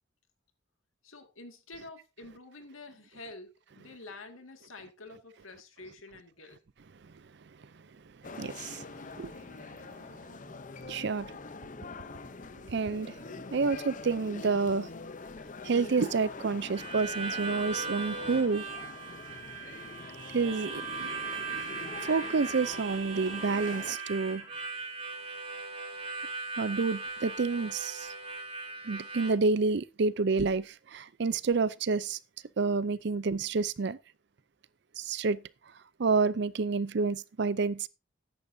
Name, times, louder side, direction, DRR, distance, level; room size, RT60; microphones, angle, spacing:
voice 1, 1.0-6.6, left 2 dB, 90° left, 2.1 m, -48 dB
sound 1, 8.2-24.0, left 3 dB, 40° left, 0.7 m, -44 dB
voice 2, 8.4-8.8 9.2-9.3 10.9-11.3 12.7-13.2 13.5-14.9 15.6-18.6 20.3-21.1 22.0-24.4 26.6-28.1 28.8-32.2 32.6-34.0 35.0-35.4 36.0-37.9, right 4 dB, 55° right, 0.5 m, -29 dB
Harmonica, 16.7-29.3, right 4 dB, 30° right, 3.8 m, -38 dB
13.5 x 10.5 x 2.7 m
head